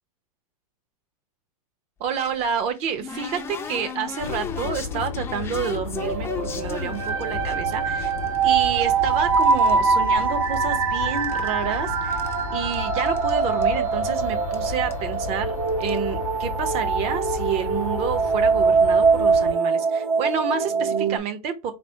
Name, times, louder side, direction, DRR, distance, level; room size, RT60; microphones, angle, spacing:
voice 1, 2.0-8.1 8.4-12.2 12.5-21.7, right 7 dB, 35° right, 0.7 m, -29 dB
sound 1, 2.1-7.5 8.0-9.8 10.0-10.8 11.1-12.4 12.7-12.8 13.1-13.3 13.6-13.7 14.5-14.6 14.9-15.1 15.7-16.0, left 6 dB, 15° left, 0.4 m, -36 dB
sound 2, 4.2-19.5, left 7 dB, 70° left, 0.7 m, -34 dB
sound 3, 6.0-21.2, right 5 dB, 75° right, 1.6 m, -23 dB
4.2 x 2.0 x 4.4 m
supercardioid pair, 140°, 19 cm